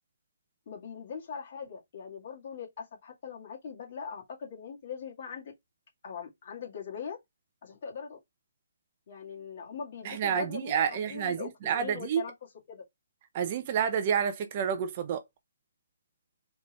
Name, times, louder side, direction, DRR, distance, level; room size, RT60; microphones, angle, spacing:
voice 1, 0.7-5.5 6.0-7.2 7.6-8.2 9.1-12.3 12.7-12.8, left 6 dB, 50° left, 2.2 m, -41 dB
voice 2, 10.0-12.2 13.3-15.2, right 8 dB, 35° right, 0.7 m, -29 dB
4.1 x 3.5 x 3.2 m
hypercardioid pair, 155°, 0 cm